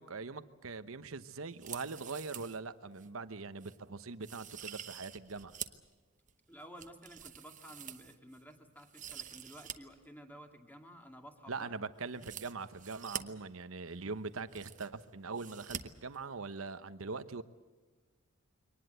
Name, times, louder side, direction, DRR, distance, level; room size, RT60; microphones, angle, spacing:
voice 1, 0.0-5.5 11.5-17.4, right 4 dB, 75° right, 12 dB, 1.0 m, -42 dB
sound 1, 1.5-2.6 3.0-3.1 3.6-3.8 4.2-5.9 6.3-8.4 8.8-9.8 10.0-10.1 12.1-13.2 14.0-14.1 14.3-15.0 15.3-15.8 16.1-16.2, right 9 dB, 40° right, 1.0 m, -46 dB
voice 2, 6.5-11.7, equal, 10° left, 4 dB, 2.2 m, -53 dB
23.5 x 19.0 x 8.1 m, 1.4 s
head